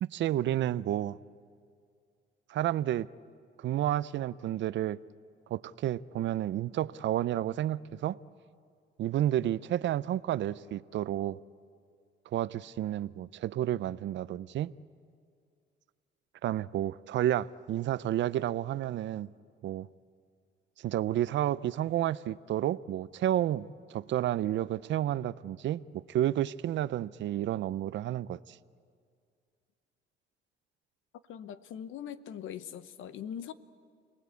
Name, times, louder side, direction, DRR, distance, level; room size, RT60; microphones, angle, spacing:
voice 1, 0.0-1.2 2.5-3.1 3.6-5.0 5.5-8.2 9.0-11.4 12.3-14.7 16.4-19.3 19.6-19.9 20.8-28.6, right 12 dB, 70° right, 0.6 m, -31 dB
voice 2, 31.3-33.5, left 9 dB, 80° left, 1.0 m, -41 dB
29.5 x 19.0 x 8.3 m
cardioid pair, 90°, 20 cm